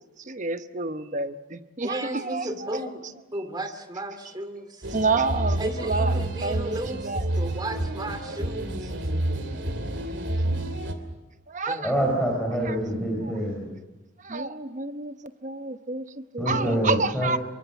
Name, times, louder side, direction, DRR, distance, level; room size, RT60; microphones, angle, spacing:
voice 1, 0.3-2.8 4.9-6.1 6.4-7.2 11.5-11.8 12.6-12.8 13.2-13.3 14.2-15.1 15.4-16.0 16.3-17.4, right 3 dB, 35° right, 10 dB, 1.0 m, -29 dB
voice 2, 1.8-3.0 3.3-5.0 5.6-8.9 11.7-12.0, right 1 dB, 20° right, 8 dB, 2.5 m, -34 dB
sound 1, 4.8-10.9, right 1 dB, 60° right, 2.8 m, -29 dB
voice 3, 11.8-13.7 16.4-17.4, equal, 5° left, -1 dB, 4.9 m, -26 dB
27.5 x 24.0 x 7.2 m, 1.1 s
head